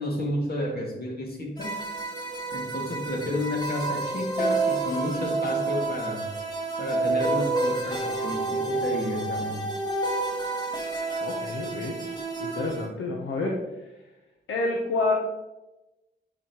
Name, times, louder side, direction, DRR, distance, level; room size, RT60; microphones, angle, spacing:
voice 1, 0.0-1.8 2.5-6.3 6.8-9.7, left 1 dB, 50° left, -1 dB, 2.1 m, -31 dB
sound 1, 1.6-12.9, right 3 dB, 20° left, 1.9 m, -29 dB
voice 2, 11.2-12.0 12.4-13.6 14.5-15.1, left 2 dB, 80° left, -1 dB, 0.9 m, -28 dB
9.0 x 4.2 x 3.0 m, 1.0 s
cardioid pair, 50°, 20 cm